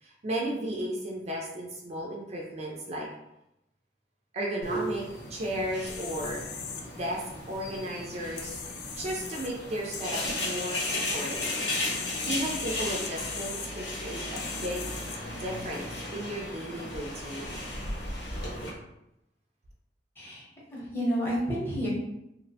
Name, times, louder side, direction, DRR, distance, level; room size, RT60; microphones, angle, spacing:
voice 1, 0.0-3.1 4.3-5.0 5.3-6.4 6.9-8.6 9.0-11.5 12.0-14.9 15.4-17.6, right 1 dB, 40° right, -2 dB, 0.4 m, -34 dB
sound 1, 4.6-18.7, left 1 dB, 80° left, 0.8 m, -35 dB
sound 2, 5.9-15.9, left 6 dB, 65° left, 0.4 m, -40 dB
voice 2, 20.7-21.9, equal, 15° left, -6 dB, 0.8 m, -30 dB
2.6 x 2.1 x 2.7 m, 0.86 s
head